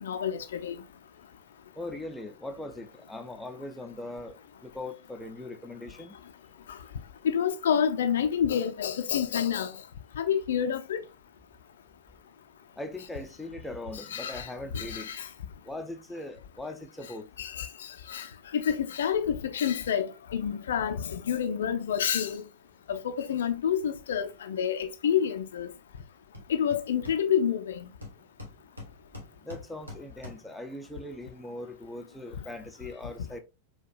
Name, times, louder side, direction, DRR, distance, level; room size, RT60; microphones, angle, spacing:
voice 1, 0.0-0.8 7.2-9.7 10.2-11.0 14.1-14.5 14.7-15.3 17.4-17.7 18.1-18.3 18.5-22.4 22.9-25.7 26.5-27.8, left 8 dB, 65° left, 0.4 m, -28 dB
voice 2, 1.8-6.1 12.8-15.1 15.6-17.3 29.4-33.4, left 2 dB, 5° left, 0.5 m, -40 dB
Hammer, 26.0-26.1 26.3-27.6 28.0-30.6, left 2 dB, 80° right, 1.1 m, -45 dB
4.6 x 2.2 x 2.4 m
figure-of-eight pair, 90°, 0 cm